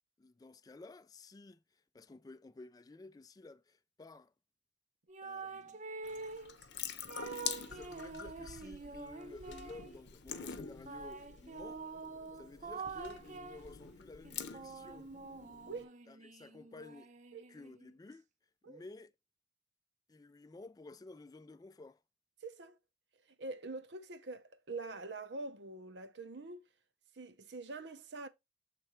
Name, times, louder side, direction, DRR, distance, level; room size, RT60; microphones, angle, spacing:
voice 1, 0.2-1.6 1.9-4.3 5.2-5.8 7.7-11.8 12.3-15.1 16.1-17.1 17.5-18.2 18.7-19.1 20.1-22.0, left 2 dB, 20° left, 0.3 m, -53 dB
sound 1, 5.1-6.5 7.1-10.0 10.8-13.7 14.2-17.9, right 4 dB, 40° right, 0.6 m, -46 dB
Water tap faucet / Sink (filling or washing) / Drip, 6.0-15.8, left 8 dB, 80° left, 0.7 m, -46 dB
voice 2, 22.4-22.8 23.4-26.6 27.2-28.3, right 3 dB, 80° right, 0.8 m, -45 dB
7.6 x 3.3 x 4.3 m
head